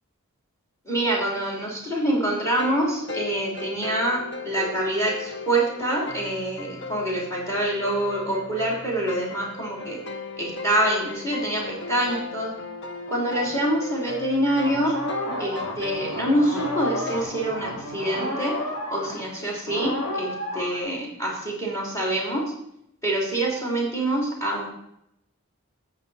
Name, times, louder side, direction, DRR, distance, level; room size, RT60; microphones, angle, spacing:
voice 1, 0.8-10.0 10.4-12.5 13.1-15.0 15.4-18.6 18.9-22.4 23.0-24.7, right 1 dB, 15° left, -2 dB, 2.9 m, -26 dB
sound 1, 2.4-17.2, left 4 dB, 50° left, 0.9 m, -37 dB
sound 2, 14.6-19.3 19.7-20.8, left 1 dB, 80° left, 3.7 m, -31 dB
11.5 x 7.9 x 4.1 m, 0.78 s
head